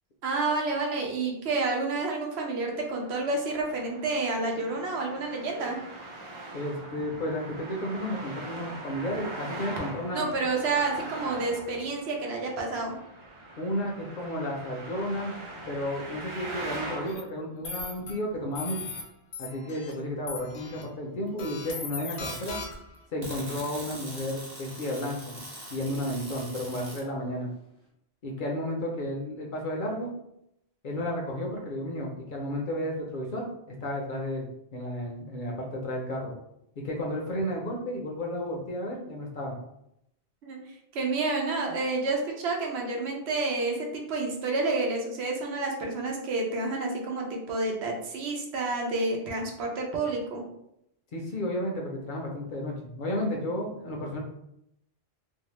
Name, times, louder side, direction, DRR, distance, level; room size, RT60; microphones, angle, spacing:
voice 1, 0.2-5.8 10.1-12.9 40.4-40.6 40.9-50.4, right 3 dB, 85° right, 0 dB, 0.9 m, -29 dB
Traffic noise roadway noise, 2.7-17.1, right 2 dB, 55° right, 0.3 m, -42 dB
voice 2, 6.5-10.3 13.6-15.4 15.7-18.8 19.4-22.6 23.1-25.4 25.7-27.5 28.2-30.1 30.8-33.5 33.8-36.3 36.8-39.6 51.1-54.2, left 1 dB, 60° left, -1 dB, 0.6 m, -32 dB
sound 1, 17.1-17.2 17.6-18.1 18.5-19.0 19.3-19.9 20.3-20.8 21.4-23.0, left 4 dB, 85° left, 0.9 m, -38 dB
sound 2, 22.1-22.6 23.2-27.0, right 1 dB, 35° right, 0.9 m, -42 dB
2.6 x 2.0 x 3.0 m, 0.79 s
omnidirectional pair, 1.1 m